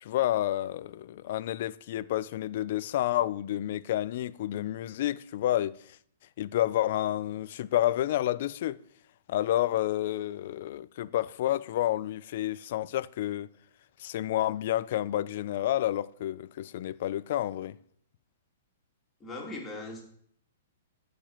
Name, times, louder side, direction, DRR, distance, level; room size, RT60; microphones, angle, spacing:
voice 1, 0.0-5.8 6.4-8.8 9.3-13.5 14.0-17.8, left 13 dB, 50° left, 0.6 m, -29 dB
voice 2, 19.2-20.0, left 2 dB, 10° left, 3.2 m, -39 dB
13.0 x 5.2 x 9.0 m
hypercardioid pair, 160°, 0 cm